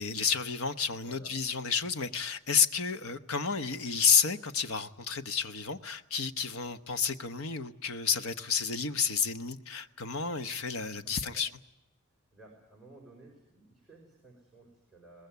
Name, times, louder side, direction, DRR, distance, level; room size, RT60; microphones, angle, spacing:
voice 1, 0.0-11.5, left 6 dB, 70° left, 10 dB, 1.2 m, -30 dB
voice 2, 0.9-1.3 11.0-11.4 12.1-15.3, right 2 dB, ahead, -2 dB, 5.4 m, -55 dB
23.0 x 20.0 x 9.5 m, 0.95 s
head